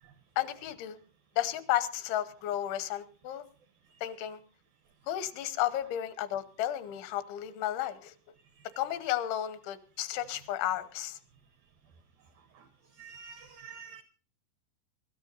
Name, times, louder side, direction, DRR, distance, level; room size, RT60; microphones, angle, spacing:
voice 1, 0.4-1.0 1.4-3.4 4.0-4.4 5.1-8.1 8.8-11.2, left 12 dB, 85° left, 3.3 m, -33 dB
voice 2, 13.0-14.0, right 7 dB, 80° right, 2.1 m, -48 dB
26.0 x 13.0 x 2.6 m
omnidirectional pair, 5.3 m